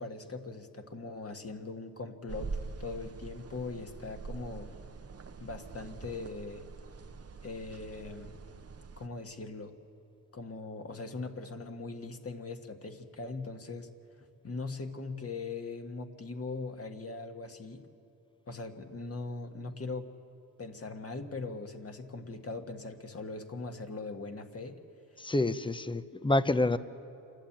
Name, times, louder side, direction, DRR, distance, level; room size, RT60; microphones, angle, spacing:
voice 1, 0.0-4.7 5.4-6.7 7.4-8.4 9.0-9.8 10.3-13.9 14.2-17.9 18.5-20.1 20.6-24.8, left 3 dB, 40° left, 5 dB, 1.6 m, -40 dB
sound 1, 2.3-9.1, right 4 dB, 40° right, 0.8 m, -44 dB
voice 2, 25.2-26.8, left 2 dB, 15° left, 13 dB, 0.7 m, -27 dB
28.0 x 11.5 x 8.7 m, 2.7 s
cardioid pair, 80°, 37 cm